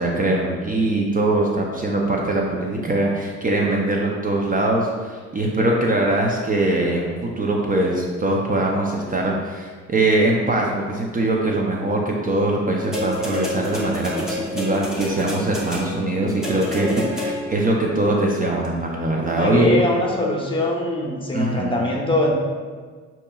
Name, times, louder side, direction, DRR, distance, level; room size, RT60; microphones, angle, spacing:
voice 1, 0.0-19.9 21.3-21.7, right 2 dB, 30° right, -1 dB, 0.5 m, -22 dB
sound 1, 12.9-17.7 18.6-18.7, left 1 dB, ahead, 1.0 m, -28 dB
voice 2, 19.3-22.3, left 1 dB, 15° left, -1 dB, 0.8 m, -23 dB
6.4 x 2.9 x 2.3 m, 1.5 s
cardioid pair, 90°, 30 cm